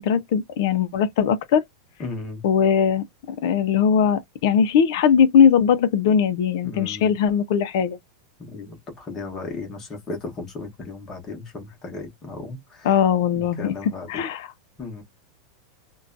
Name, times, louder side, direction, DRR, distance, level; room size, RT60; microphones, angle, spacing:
voice 1, 0.0-1.6 2.4-8.0 12.8-14.5, left 7 dB, 50° left, 0.4 m, -20 dB
voice 2, 2.0-2.4 6.6-7.1 8.4-12.9 13.3-14.1 14.8-15.0, left 3 dB, 15° left, 0.9 m, -35 dB
2.6 x 2.1 x 2.5 m
supercardioid pair, 180°, 2 cm